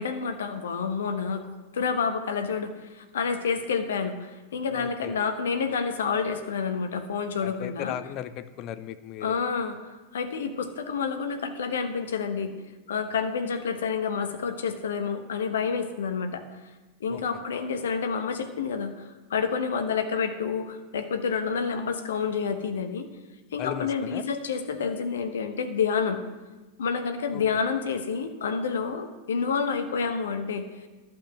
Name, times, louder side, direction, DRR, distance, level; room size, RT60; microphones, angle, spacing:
voice 1, 0.0-1.5 1.7-8.0 9.2-12.5 12.9-16.4 17.0-23.1 23.5-26.2 26.8-30.7, left 5 dB, 65° left, 8 dB, 1.1 m, -29 dB
voice 2, 4.7-5.1 7.4-9.4 17.1-17.2 23.6-24.3 27.3-27.6, left 10 dB, 40° left, 12 dB, 0.6 m, -37 dB
11.5 x 5.6 x 7.8 m, 1.2 s
figure-of-eight pair, 90°, 0 cm